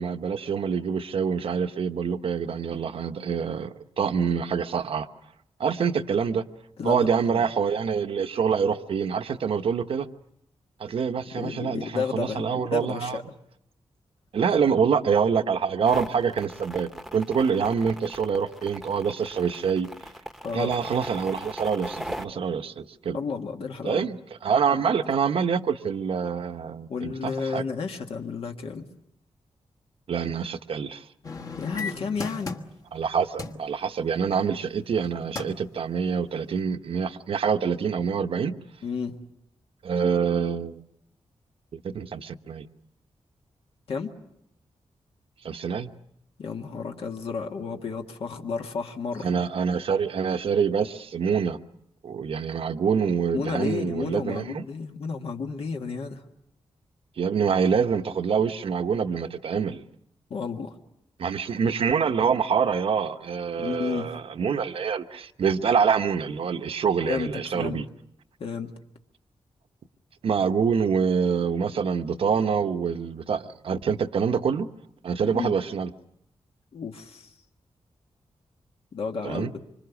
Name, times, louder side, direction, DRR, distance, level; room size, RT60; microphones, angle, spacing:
voice 1, 0.0-5.1 5.6-6.4 6.8-10.1 10.8-13.2 14.3-19.9 20.5-23.2 23.8-27.6 30.1-31.0 32.9-38.6 39.8-40.8 41.7-42.7 45.4-45.9 49.2-51.6 52.0-54.7 57.2-59.8 61.2-67.8 70.2-74.7 75.0-75.9 79.2-79.5, right 6 dB, 65° right, 9 dB, 1.0 m, -26 dB
voice 2, 6.8-7.5 11.3-13.2 20.4-20.7 23.1-24.1 24.7-24.8 26.9-28.9 31.6-32.6 38.8-39.3 43.9-44.1 46.4-49.3 53.3-56.2 60.3-60.8 63.6-64.1 67.0-67.8 68.4-68.7 75.2-75.5 76.7-77.3 78.9-79.6, left 5 dB, 70° left, 3 dB, 1.7 m, -32 dB
sound 1, 15.9-22.2, equal, ahead, 1.0 m, -38 dB
sound 2, 31.2-33.0 33.4-33.6 34.9-35.1 35.4-35.7 36.2-36.3, left 4 dB, 35° left, 1.3 m, -35 dB
25.5 x 25.5 x 7.1 m, 0.78 s
wide cardioid pair, 170°, 10 cm